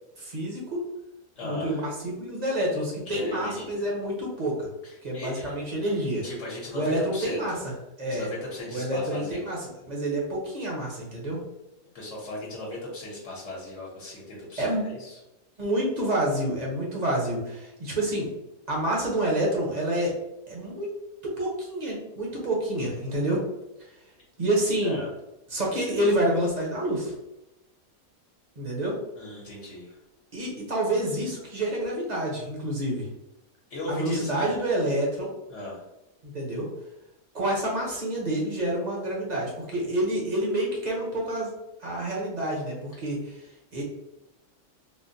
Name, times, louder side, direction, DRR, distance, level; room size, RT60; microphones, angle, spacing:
voice 1, 0.2-0.8 1.4-4.7 5.0-6.2 6.7-7.7 8.0-8.3 8.7-11.4 14.6-14.8 15.6-18.3 18.7-20.1 20.5-20.9 21.2-23.4 23.8-23.9 24.4-25.0 25.5-27.1 28.6-29.0 30.3-33.1 33.9-35.3 36.2-36.7 37.3-41.5 41.8-43.8, right 1 dB, 40° right, -3 dB, 0.7 m, -28 dB
voice 2, 1.3-1.9 3.1-3.9 4.8-5.5 6.2-7.6 8.1-9.4 11.9-15.2 20.0-20.1 24.8-25.1 29.2-30.0 33.7-34.6 35.5-35.8, left 1 dB, 60° left, -5 dB, 1.1 m, -37 dB
3.7 x 2.1 x 2.6 m, 0.93 s
omnidirectional pair, 1.5 m